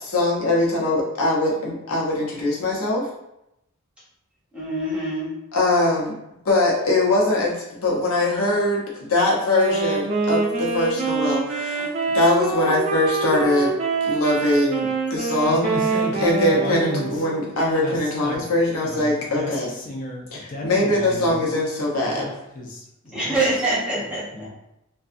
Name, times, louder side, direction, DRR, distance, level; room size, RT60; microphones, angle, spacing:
voice 1, 0.0-3.1 5.5-6.1 6.4-13.7 14.0-15.7 16.2-19.7 20.3-22.2, left 1 dB, 90° left, -3 dB, 0.8 m, -22 dB
voice 2, 4.5-5.3 23.1-24.5, right 2 dB, 5° right, -8 dB, 0.9 m, -25 dB
Wind instrument woodwind instrument, 9.5-17.5, right 4 dB, 30° right, 0.4 m, -25 dB
voice 3, 15.5-17.2 17.8-18.4 18.8-21.4 22.2-23.3 24.3-24.5, left 1 dB, 40° left, -1 dB, 0.5 m, -32 dB
2.6 x 2.3 x 2.5 m, 0.86 s
head